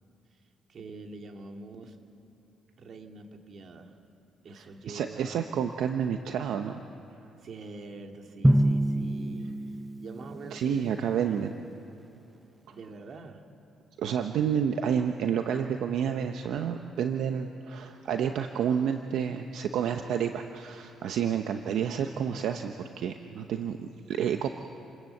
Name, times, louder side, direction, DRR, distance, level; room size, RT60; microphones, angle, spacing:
voice 1, 0.7-2.0 2.8-4.0 4.4-5.4 7.4-11.4 12.7-13.4, right 3 dB, 55° right, 4 dB, 2.4 m, -45 dB
voice 2, 4.5-6.8 10.5-11.6 12.7-12.8 14.0-24.5, right 8 dB, 80° right, 6 dB, 0.9 m, -30 dB
Drum, 8.4-10.6, right 1 dB, 10° right, 0.8 m, -26 dB
29.0 x 20.5 x 8.0 m, 2.7 s
cardioid pair, 90°, 0 cm